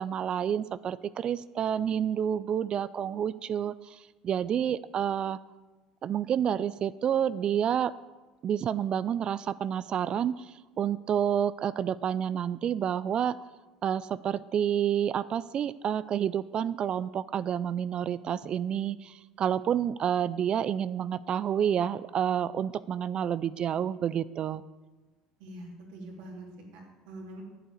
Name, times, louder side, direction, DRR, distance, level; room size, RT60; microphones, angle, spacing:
voice 1, 0.0-5.4 6.0-7.9 8.4-13.4 13.8-24.6, right 9 dB, 45° right, 17 dB, 0.4 m, -29 dB
voice 2, 25.4-27.4, right 1 dB, 75° right, 0 dB, 2.9 m, -44 dB
9.9 x 8.0 x 6.6 m, 1.2 s
supercardioid pair, 85°, 2 cm